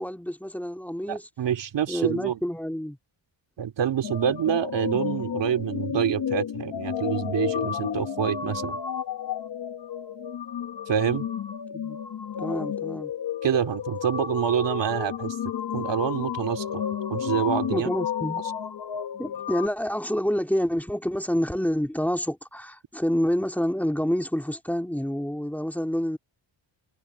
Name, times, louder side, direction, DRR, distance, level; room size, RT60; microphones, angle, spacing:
voice 1, 0.0-1.3 1.9-3.0 11.7-12.0 12.4-13.1 17.7-18.4 19.2-26.2, equal, 5° left, 2.5 m, -28 dB
voice 2, 1.1-2.4 3.6-8.8 10.9-11.3 13.4-15.3 15.7-16.8 17.1-17.9, right 9 dB, 65° right, 2.6 m, -26 dB
sound 1, 4.0-19.7, left 8 dB, 55° left, 1.4 m, -32 dB
wide cardioid pair, 160°, 46 cm